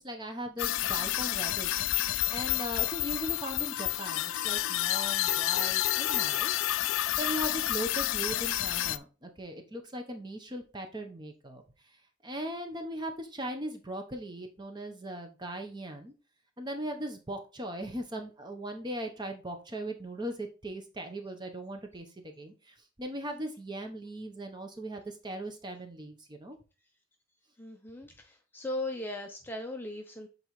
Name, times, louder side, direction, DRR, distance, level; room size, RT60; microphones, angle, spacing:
voice 1, 0.0-6.5 6.9-11.6 12.2-16.1 16.6-26.6, right 1 dB, 20° right, 5 dB, 0.8 m, -39 dB
sound 1, 0.6-9.0, left 14 dB, 70° left, 0.3 m, -30 dB
voice 2, 27.6-30.3, left 1 dB, 10° left, 3 dB, 0.5 m, -38 dB
7.7 x 4.0 x 3.1 m, 0.34 s
head